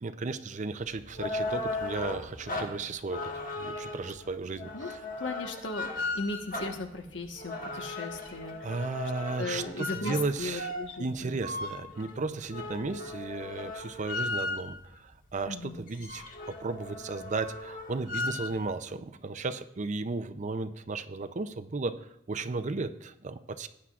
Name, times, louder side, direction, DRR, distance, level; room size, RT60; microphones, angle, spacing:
voice 1, 0.0-5.0 7.8-8.0 8.6-10.7 11.0-23.7, right 3 dB, 40° right, 11 dB, 0.5 m, -35 dB
sound 1, 0.9-14.9 15.4-15.5 15.7-18.6, left 2 dB, 45° left, 1.4 m, -37 dB
voice 2, 5.2-8.7 9.4-11.3 15.5-15.8, left 2 dB, 75° left, 4 dB, 1.3 m, -37 dB
17.5 x 9.7 x 2.4 m, 0.80 s
head